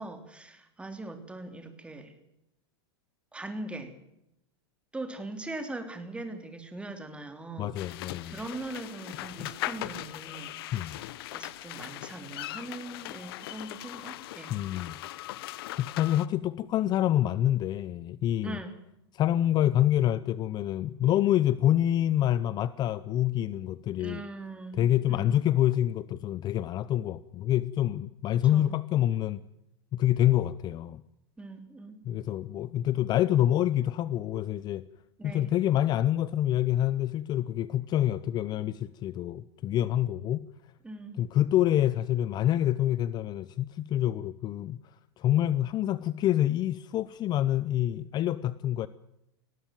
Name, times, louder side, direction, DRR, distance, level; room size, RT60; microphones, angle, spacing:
voice 1, 0.0-2.1 3.3-3.9 4.9-7.7 8.3-11.1 11.3-14.5 18.4-18.7 24.0-25.4 28.5-28.7 31.4-32.0 35.2-35.5 40.8-41.3, right 2 dB, 10° right, 3.3 m, -41 dB
voice 2, 7.6-8.4 9.4-9.5 10.7-11.0 14.5-15.0 15.8-18.6 19.2-24.2 24.8-29.4 29.9-31.0 32.0-34.8 35.2-40.5 41.2-44.8 45.2-48.9, left 12 dB, 30° left, 0.7 m, -27 dB
sound 1, 7.8-16.3, left 16 dB, 60° left, 1.0 m, -40 dB
19.5 x 17.0 x 9.2 m
hypercardioid pair, 125°, 14 cm